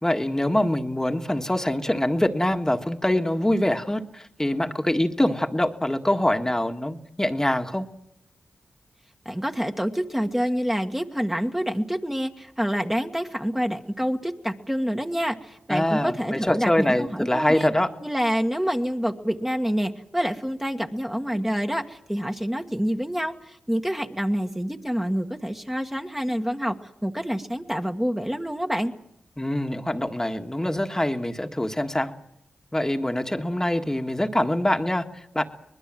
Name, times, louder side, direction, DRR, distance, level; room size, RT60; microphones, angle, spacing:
voice 1, 0.0-7.9 15.7-17.9 29.4-32.1 32.7-35.4, left 1 dB, 15° left, 6 dB, 1.6 m, -24 dB
voice 2, 9.2-17.7 18.0-26.8 27.0-28.9, equal, 10° right, 4 dB, 1.6 m, -27 dB
23.5 x 20.0 x 7.6 m, 0.80 s
cardioid pair, 45°, 3 cm